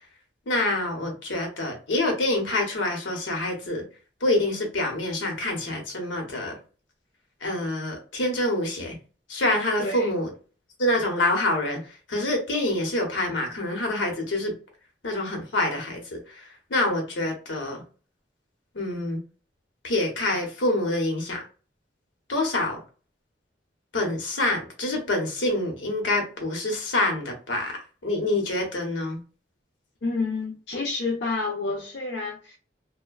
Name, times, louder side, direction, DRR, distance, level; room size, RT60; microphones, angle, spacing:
voice 1, 0.5-3.8 4.2-6.6 7.4-9.0 9.3-10.3 10.8-11.8 12.1-14.5 15.0-17.8 18.7-19.2 19.8-21.4 22.3-22.8 23.9-29.2, left 1 dB, 90° left, 0.9 m, -26 dB
voice 2, 9.8-10.1 30.0-32.6, left 3 dB, 65° left, 0.5 m, -29 dB
2.5 x 2.1 x 2.3 m
head